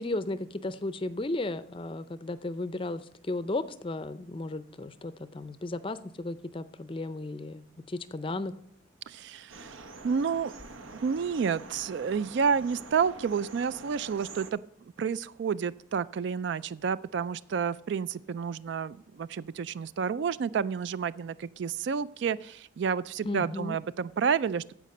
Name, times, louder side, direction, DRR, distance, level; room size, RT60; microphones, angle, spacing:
voice 1, 0.0-8.5 23.2-23.8, left 2 dB, 25° left, 13 dB, 0.5 m, -34 dB
voice 2, 9.1-9.8 10.0-10.5 10.9-24.7, right 6 dB, 60° right, 17 dB, 0.3 m, -30 dB
sound 1, 9.5-14.5, right 3 dB, 80° right, 0.9 m, -46 dB
15.0 x 5.0 x 6.4 m, 0.67 s
head